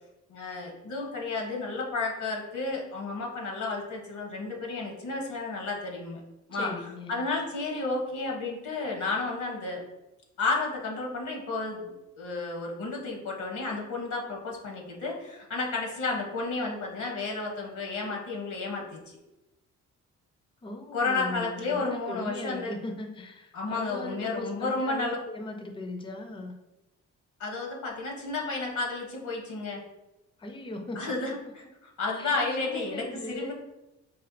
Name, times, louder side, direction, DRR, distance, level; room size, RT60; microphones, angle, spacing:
voice 1, 0.3-6.2 6.5-6.7 7.1-9.8 10.4-19.2 20.9-22.7 23.5-25.2 27.4-29.8 31.0-31.6 32.0-33.5, left 3 dB, 70° left, 0 dB, 1.0 m, -32 dB
voice 2, 6.5-7.2 20.6-26.5 30.4-31.3 32.2-33.5, left 2 dB, 15° left, 5 dB, 0.4 m, -38 dB
4.2 x 2.4 x 2.6 m, 0.97 s
cardioid pair, 90°, 30 cm